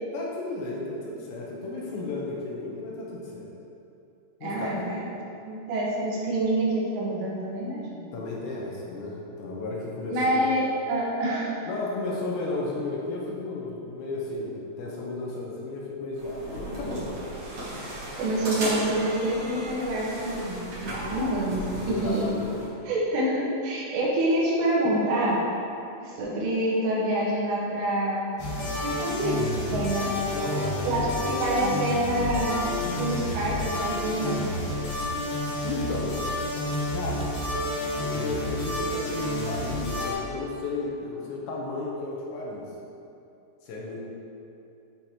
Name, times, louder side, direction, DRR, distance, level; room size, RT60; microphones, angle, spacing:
voice 1, 0.1-3.5 4.4-4.9 8.1-10.4 11.7-17.2 21.9-22.6 30.4-31.1 35.6-36.2 36.9-37.4 38.0-42.7 43.6-44.0, left 3 dB, 80° left, -3 dB, 3.0 m, -33 dB
voice 2, 4.4-5.0 5.5-8.0 10.1-11.5 18.2-21.6 21.9-22.3 22.9-25.4 26.0-28.4 28.8-30.1 30.9-32.6 33.0-34.6, right 1 dB, 80° right, -5 dB, 3.9 m, -27 dB
sound 1, 16.2-22.7, right 1 dB, 50° right, 1.7 m, -35 dB
sound 2, 28.4-40.1, left 1 dB, 60° left, 3.1 m, -30 dB
12.0 x 5.2 x 2.9 m, 2.7 s
omnidirectional pair, 5.6 m